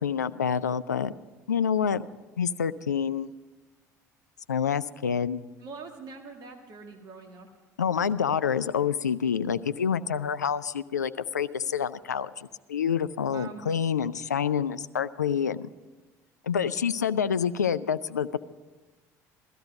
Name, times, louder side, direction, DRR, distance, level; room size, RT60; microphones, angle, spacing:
voice 1, 0.0-1.1 1.5-2.0 2.4-3.3 4.5-5.4 7.8-15.7 16.4-18.4, left 7 dB, 90° left, 14 dB, 0.4 m, -27 dB
voice 2, 5.6-7.5 13.3-13.7, right 4 dB, 50° right, 3 dB, 1.7 m, -43 dB
17.0 x 13.5 x 5.2 m, 1.2 s
hypercardioid pair, 60°, 9 cm